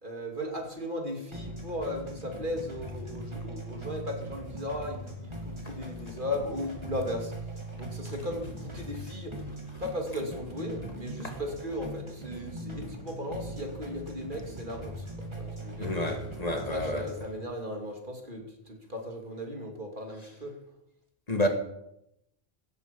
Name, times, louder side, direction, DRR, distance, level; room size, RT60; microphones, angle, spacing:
voice 1, 0.0-9.3 9.8-15.9 16.6-20.5, left 1 dB, 55° right, 3.0 m, -36 dB
sound 1, 1.3-17.3, right 1 dB, 25° right, 3.0 m, -41 dB
voice 2, 15.8-17.0 21.3-21.5, left 1 dB, 40° left, 1.8 m, -29 dB
17.0 x 13.5 x 5.4 m
omnidirectional pair, 1.1 m